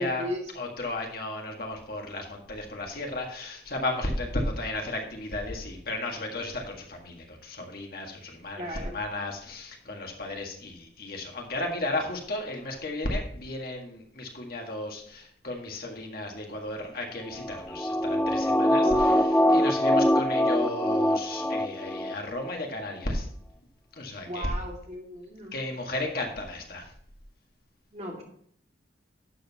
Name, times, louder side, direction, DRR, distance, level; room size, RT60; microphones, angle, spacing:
voice 1, 0.0-0.6 8.6-9.0 18.7-19.5 24.2-25.6 27.9-28.2, equal, 35° right, -1 dB, 2.3 m, -36 dB
voice 2, 0.5-19.2 19.5-23.3 24.0-24.5 25.5-26.8, left 2 dB, 50° left, 1 dB, 1.8 m, -34 dB
sound 1, 17.4-22.1 22.5-22.6, equal, 10° left, 0.4 m, -23 dB
11.5 x 7.8 x 2.9 m, 0.66 s
head